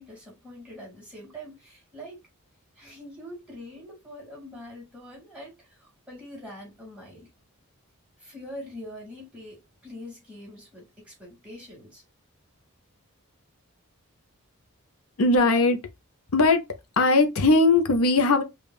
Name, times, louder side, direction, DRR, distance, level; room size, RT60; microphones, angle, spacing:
voice 1, 0.0-2.2 2.8-7.3 8.2-12.0, equal, 5° right, 2.2 m, -43 dB
voice 2, 15.2-15.8 16.3-16.6 17.0-18.4, left 3 dB, 70° left, 0.7 m, -19 dB
5.3 x 2.4 x 2.4 m
head